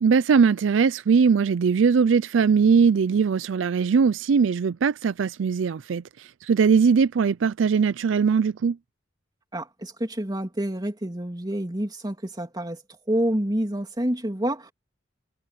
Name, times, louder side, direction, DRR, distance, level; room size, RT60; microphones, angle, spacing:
voice 1, 0.0-8.8, right 5 dB, 80° right, 0.4 m, -20 dB
voice 2, 9.5-12.8 13.1-14.7, right 1 dB, 20° right, 3.1 m, -28 dB
head